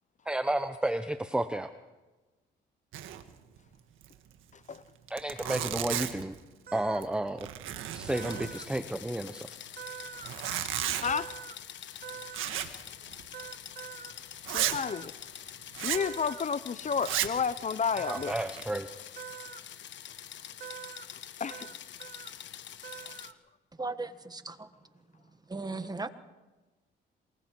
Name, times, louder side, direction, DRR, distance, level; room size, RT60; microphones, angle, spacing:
voice 1, 0.3-1.7 5.1-6.3 6.7-7.5 7.9-9.5 18.1-18.9, right 1 dB, 5° right, 0.9 m, -31 dB
Zipper (clothing), 2.9-3.3 3.6-3.7 4.0-4.1 4.7-4.8 5.1-6.3 6.9-7.1 7.4-8.8 10.1-11.1 12.3-12.8 13.1-13.3 13.8-13.9 14.4-14.8 15.7-16.1 17.0-17.4 18.0-18.6, right 11 dB, 90° right, 1.6 m, -33 dB
voice 2, 4.5-4.8 11.0-11.3 14.5-15.1 15.8-18.3 21.4-21.7, left 6 dB, 40° left, 0.7 m, -31 dB
sound 1, 6.7-7.0 8.1-8.7 9.8-10.3 11.0-11.6 12.0-12.5 13.3-14.1 14.9-15.1 15.9-16.4 18.0-18.5 19.2-19.6 20.6-21.1 21.5-21.7 22.0-22.3 22.8-23.3, right 9 dB, 50° right, 1.2 m, -44 dB
sound 2, 8.1-23.3, left 10 dB, 65° left, 1.2 m, -46 dB
voice 3, 23.8-24.7 25.5-26.1, right 3 dB, 20° right, 1.5 m, -36 dB
27.0 x 21.5 x 4.7 m
cardioid pair, 90°, 20 cm